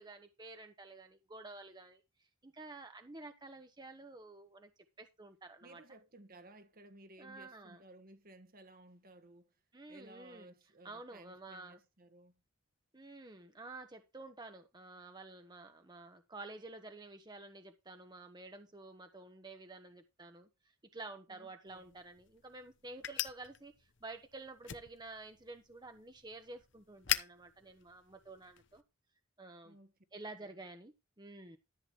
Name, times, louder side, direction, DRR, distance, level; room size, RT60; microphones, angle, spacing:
voice 1, 0.0-4.7 5.0-5.8 7.2-7.8 9.7-10.5 10.8-11.8 12.9-20.5 20.9-28.8 29.4-29.7 30.1-31.6, right 2 dB, 20° right, 1.1 m, -51 dB
voice 2, 5.6-9.6 9.9-12.3 21.3-21.9 29.6-29.9 30.4-30.6, right 1 dB, 45° right, 1.5 m, -58 dB
sound 1, 21.7-28.8, left 11 dB, 65° left, 1.0 m, -43 dB
13.5 x 8.0 x 3.1 m
head